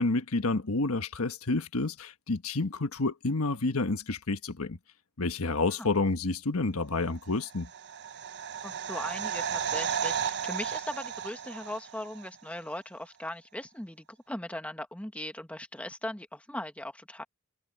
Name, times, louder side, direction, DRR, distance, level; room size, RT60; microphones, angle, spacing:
voice 1, 0.0-4.8 5.2-7.7, left 3 dB, 75° left, 1.4 m, -29 dB
sound 1, 7.4-12.3 12.6-12.7, right 7 dB, 50° right, 0.9 m, -34 dB
voice 2, 8.6-17.2, left 1 dB, 5° left, 1.6 m, -39 dB
head